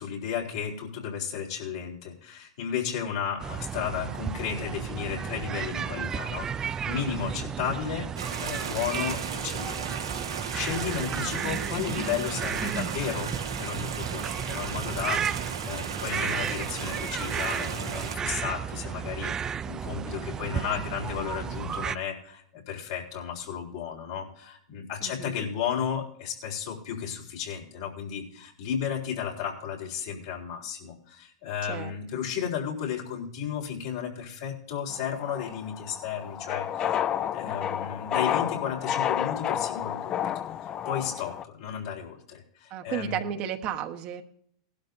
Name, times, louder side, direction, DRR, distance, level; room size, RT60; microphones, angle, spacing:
voice 1, 0.0-8.1 8.4-9.8 10.2-37.0 37.3-43.3, left 8 dB, 65° left, 0 dB, 3.8 m, -34 dB
sound 1, 3.4-22.0, right 7 dB, 25° right, 0.4 m, -33 dB
voice 2, 6.9-7.2 10.7-10.8 25.0-25.4 31.7-31.9 42.7-44.2, right 10 dB, 45° right, 5 dB, 1.2 m, -34 dB
sound 2, 8.2-18.2, right 6 dB, 90° right, 1.6 m, -36 dB
sound 3, 34.9-41.4, left 10 dB, 30° left, 0.5 m, -30 dB
18.5 x 12.0 x 2.7 m, 0.68 s
hypercardioid pair, 105°, 3 cm